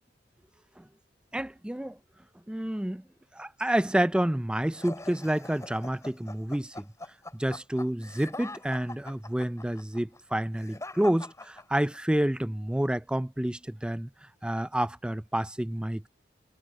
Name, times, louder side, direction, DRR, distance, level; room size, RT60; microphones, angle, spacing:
voice 1, 1.3-2.0 2.5-3.0 3.3-6.9 7.3-14.1 14.4-16.1, right 1 dB, 5° right, 0.4 m, -29 dB
sound 1, 4.7-12.2, left 2 dB, 15° left, 3.0 m, -43 dB
head